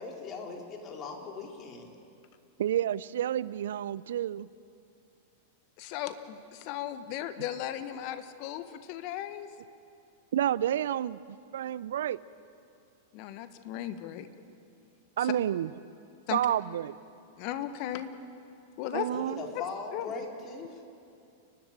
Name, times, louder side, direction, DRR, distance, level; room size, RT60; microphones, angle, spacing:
voice 1, 0.0-1.9 19.1-20.8, left 4 dB, 35° left, 1 dB, 3.7 m, -40 dB
voice 2, 2.6-4.5 10.3-12.2 15.2-15.7 16.3-17.0 18.9-19.4, right 11 dB, 70° right, 19 dB, 0.5 m, -30 dB
voice 3, 5.8-9.5 13.1-14.3 15.2-15.3 16.3-16.4 17.4-18.1 18.8-19.1 19.9-20.0, left 12 dB, 50° left, 10 dB, 1.4 m, -36 dB
30.0 x 12.0 x 8.8 m, 2.6 s
hypercardioid pair, 100°, 0 cm